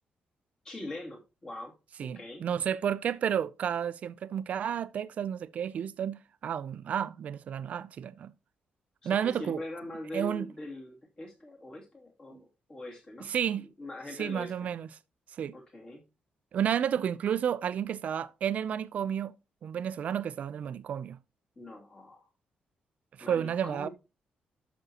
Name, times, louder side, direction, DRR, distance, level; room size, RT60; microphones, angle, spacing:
voice 1, 0.6-2.4 9.0-13.3 13.8-14.5 15.5-16.0 21.6-22.2 23.2-23.9, left 1 dB, 25° left, 2.6 m, -42 dB
voice 2, 2.0-8.3 9.0-9.6 10.1-10.5 12.3-12.4 13.2-13.7 14.2-14.9 15.4-15.5 16.5-19.3 19.6-21.2 23.2-23.9, right 9 dB, 50° right, 0.5 m, -31 dB
12.0 x 6.0 x 2.9 m
wide cardioid pair, 170°, 3 cm